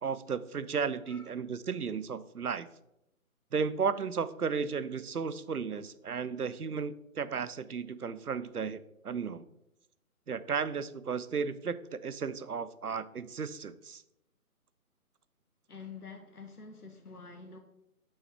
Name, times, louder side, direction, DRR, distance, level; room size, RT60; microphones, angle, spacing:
voice 1, 0.0-2.7 3.5-9.4 10.3-14.0, right 6 dB, 85° right, 14 dB, 0.7 m, -34 dB
voice 2, 1.0-1.4 15.7-17.6, left 5 dB, 90° left, 4 dB, 1.1 m, -47 dB
6.6 x 5.6 x 4.5 m, 0.83 s
figure-of-eight pair, 150°, 44 cm